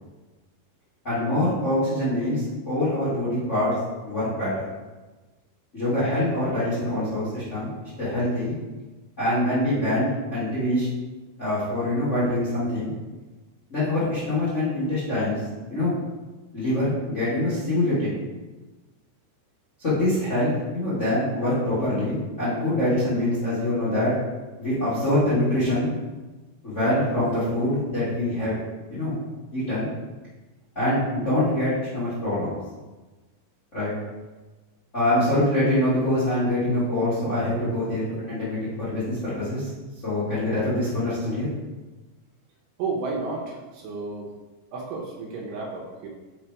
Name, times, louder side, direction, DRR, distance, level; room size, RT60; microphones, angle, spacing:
voice 1, 1.0-3.7 4.0-4.6 5.7-7.7 8.0-8.5 9.2-10.8 11.4-12.9 13.7-15.4 15.7-15.9 16.5-18.1 19.8-24.1 24.6-25.9 26.6-28.6 28.9-29.2 29.5-29.9 30.7-32.5 33.7-33.9 34.9-39.7 40.0-41.5, left 1 dB, 40° left, -12 dB, 1.0 m, -24 dB
voice 2, 42.8-44.3 44.7-46.1, right 3 dB, 75° right, -2 dB, 2.6 m, -32 dB
5.8 x 4.1 x 4.6 m, 1.2 s
omnidirectional pair, 4.9 m